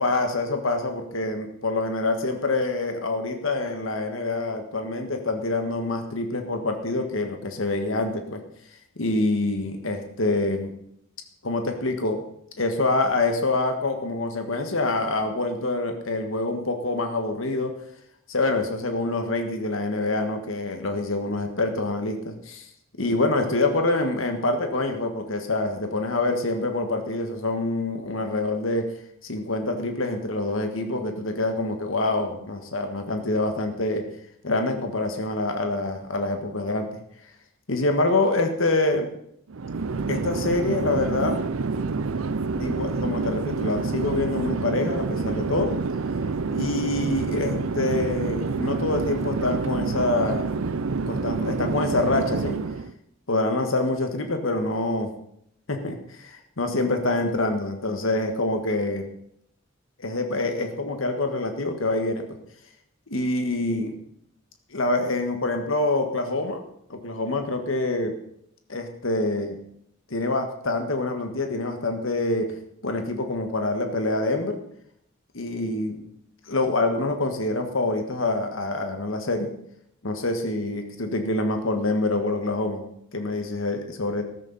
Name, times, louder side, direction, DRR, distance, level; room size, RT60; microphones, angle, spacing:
voice 1, 0.0-8.4 9.0-10.7 11.4-12.2 12.6-17.7 18.3-22.7 23.0-28.9 29.3-34.0 34.4-36.9 37.7-39.1 40.1-41.4 42.6-45.7 46.5-50.5 51.1-52.6 53.3-55.1 55.7-59.0 60.0-62.3 63.1-63.9 64.7-66.6 66.9-68.2 68.7-69.6 70.1-72.5 72.8-74.6 75.3-76.0 76.5-79.5 80.0-82.8 83.1-84.2, left 2 dB, 75° left, 5 dB, 1.6 m, -26 dB
Chatter / Fixed-wing aircraft airplane, 39.5-52.9, right 4 dB, 85° right, 0.6 m, -27 dB
13.5 x 13.5 x 4.1 m, 0.72 s
head